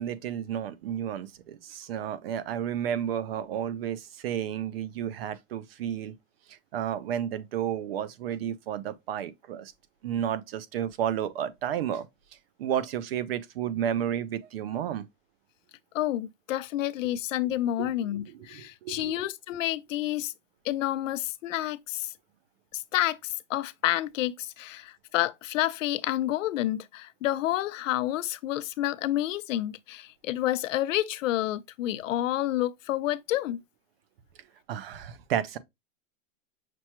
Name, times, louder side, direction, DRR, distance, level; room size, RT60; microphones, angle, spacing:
voice 1, 0.0-6.1 6.7-9.7 10.0-12.1 12.6-15.0 17.8-17.9 18.5-19.1 34.7-35.6, right 9 dB, 50° right, 0.5 m, -32 dB
voice 2, 15.9-20.3 20.6-22.1 22.7-33.6, left 14 dB, 80° left, 0.6 m, -29 dB
5.9 x 2.2 x 2.8 m
supercardioid pair, 170°, 38 cm